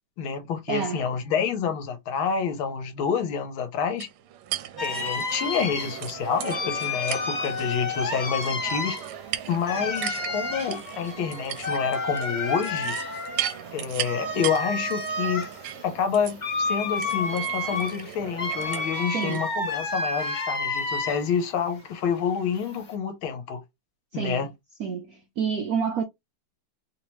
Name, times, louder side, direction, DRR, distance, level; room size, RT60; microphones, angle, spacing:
voice 1, 0.2-4.1 4.8-9.0 9.5-13.0 13.7-15.5 15.8-23.6 24.1-24.5, left 6 dB, 75° left, 1.6 m, -28 dB
voice 2, 0.7-1.0 19.1-19.4 24.1-24.5 24.8-26.0, right 6 dB, 65° right, 0.9 m, -28 dB
sound 1, 4.0-19.4, right 11 dB, 85° right, 1.5 m, -37 dB
sound 2, 4.8-21.4 21.8-22.9, left 3 dB, 35° left, 0.8 m, -31 dB
3.6 x 2.9 x 3.0 m
omnidirectional pair, 2.4 m